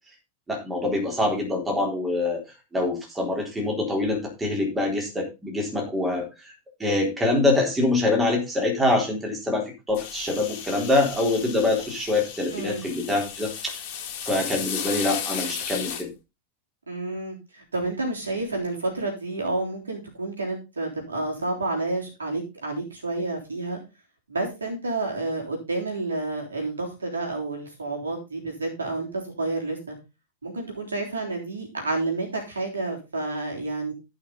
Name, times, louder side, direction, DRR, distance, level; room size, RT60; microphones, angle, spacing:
voice 1, 0.5-2.4 2.7-6.5 6.8-13.8 14.2-16.1, left 2 dB, 10° right, 1 dB, 3.9 m, -25 dB
sound 1, 9.9-16.0, left 8 dB, 45° left, 2.2 m, -34 dB
voice 2, 12.5-12.9 16.9-23.8 24.3-30.0 30.4-33.9, right 2 dB, 75° right, 0 dB, 3.6 m, -30 dB
14.5 x 5.9 x 3.9 m, 0.26 s
figure-of-eight pair, 90°, 0 cm